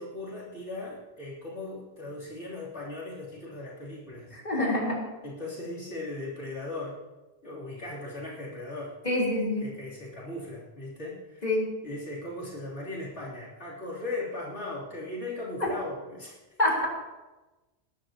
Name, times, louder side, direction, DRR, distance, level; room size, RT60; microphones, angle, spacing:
voice 1, 0.0-4.4 5.2-7.0 7.4-9.0 9.6-11.4 11.8-16.4, left 2 dB, 75° left, -7 dB, 3.5 m, -38 dB
voice 2, 4.3-5.0 9.0-9.6 11.4-11.7 15.6-15.7 16.6-16.9, left 1 dB, 35° left, -5 dB, 3.7 m, -26 dB
21.0 x 12.0 x 2.9 m, 1.1 s
omnidirectional pair, 1.2 m